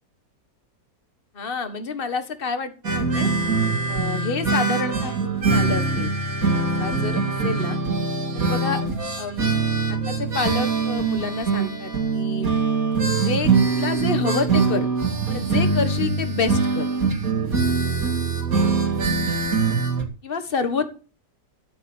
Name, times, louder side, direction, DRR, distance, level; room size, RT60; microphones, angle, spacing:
voice 1, 1.3-3.3 3.9-6.1 6.8-7.8 8.3-8.8 9.2-9.5 9.9-12.5 13.1-14.9 15.3-16.9 20.2-20.9, left 4 dB, 35° left, 9 dB, 1.8 m, -28 dB
sound 1, 2.8-20.0, right 4 dB, 55° right, 2.9 m, -23 dB
13.5 x 8.5 x 7.3 m, 0.37 s
omnidirectional pair, 1.8 m